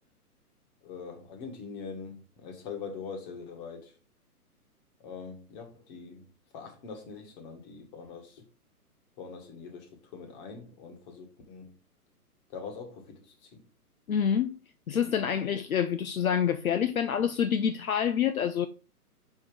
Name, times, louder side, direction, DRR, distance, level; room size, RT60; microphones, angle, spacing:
voice 1, 0.8-4.0 5.0-6.3 6.5-8.4 9.2-11.8 12.5-13.6, left 5 dB, 30° left, 1.6 m, -43 dB
voice 2, 14.1-14.6 14.9-18.7, left 8 dB, 65° left, 0.7 m, -27 dB
5.8 x 4.5 x 5.0 m
figure-of-eight pair, 135°, 47 cm